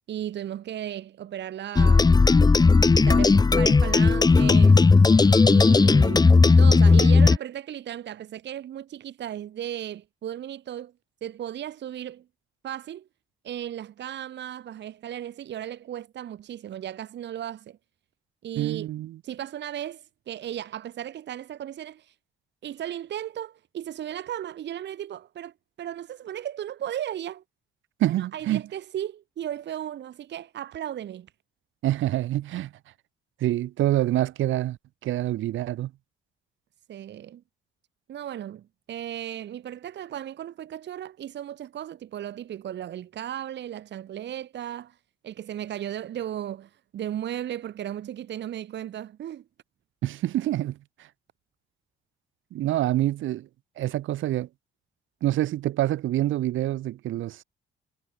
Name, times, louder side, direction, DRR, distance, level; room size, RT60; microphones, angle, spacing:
voice 1, 0.1-2.2 2.8-4.8 5.4-10.9 11.2-12.2 12.6-13.1 13.4-17.8 18.4-18.9 19.2-22.1 22.6-27.4 28.0-31.3 36.9-37.4 38.1-45.0 45.2-49.4, right 11 dB, 65° right, 1.3 m, -35 dB
sound 1, 1.8-7.4, left 4 dB, 20° left, 0.8 m, -16 dB
voice 2, 18.5-19.2 28.0-28.6 31.8-32.7 33.4-35.9 50.0-51.1 52.5-53.5 53.8-54.5 55.2-57.4, right 14 dB, 80° right, 1.6 m, -26 dB
cardioid pair, 90°, 20 cm